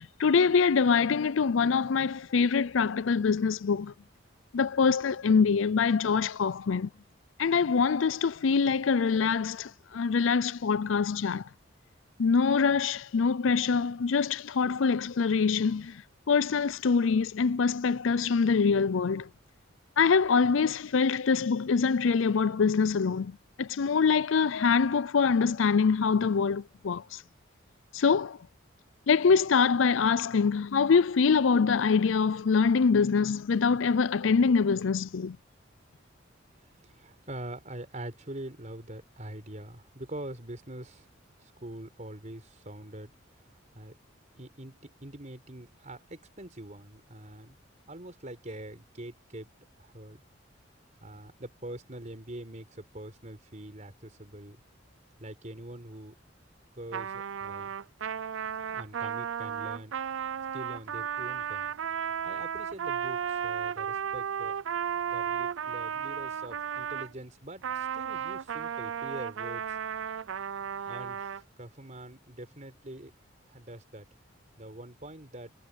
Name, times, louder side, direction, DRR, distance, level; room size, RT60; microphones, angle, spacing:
voice 1, 0.2-3.9 4.5-6.9 7.4-11.4 12.2-15.9 16.3-19.3 20.0-23.3 23.6-27.0 27.9-28.4 29.1-35.4, left 5 dB, 75° left, 0.5 m, -24 dB
voice 2, 36.7-41.1 41.4-43.2 43.7-43.9 44.4-47.6 47.9-49.5 49.8-50.2 51.0-54.6 55.2-56.1 56.7-57.7 58.7-59.9 60.5-61.7 62.2-64.6 65.1-69.6 70.9-73.1 73.5-74.1 74.6-75.5, right 1 dB, 40° right, 4.3 m, -44 dB
Trumpet, 56.9-67.1 67.6-71.4, right 8 dB, 80° right, 0.5 m, -34 dB
head